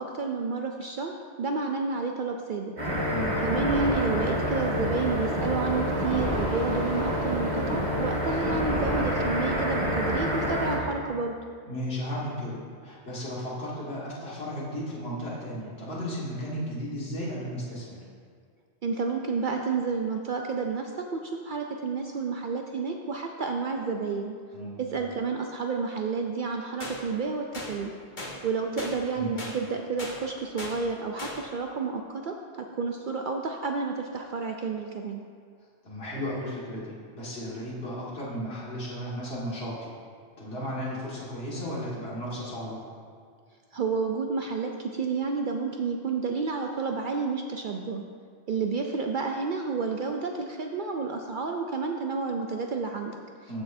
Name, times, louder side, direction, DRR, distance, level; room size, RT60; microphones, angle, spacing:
voice 1, 0.0-2.7 3.4-11.4 18.8-24.3 24.8-27.9 28.4-35.2 43.7-48.0 48.5-53.6, right 4 dB, 60° right, 3 dB, 0.6 m, -30 dB
sound 1, 2.8-10.8, equal, 75° right, 2.8 m, -27 dB
voice 2, 3.0-3.4 11.7-18.0 24.5-24.8 29.2-29.5 35.8-39.9 40.4-42.8 53.5-53.6, equal, 60° left, -6 dB, 2.1 m, -34 dB
sound 2, 26.8-27.0 27.5-27.7 28.2-28.3 28.8-28.9 29.4-29.5 30.0-30.1 30.6-30.7 31.2-31.3, left 2 dB, 45° left, 1.4 m, -36 dB
14.0 x 6.3 x 2.6 m, 2.1 s
omnidirectional pair, 1.2 m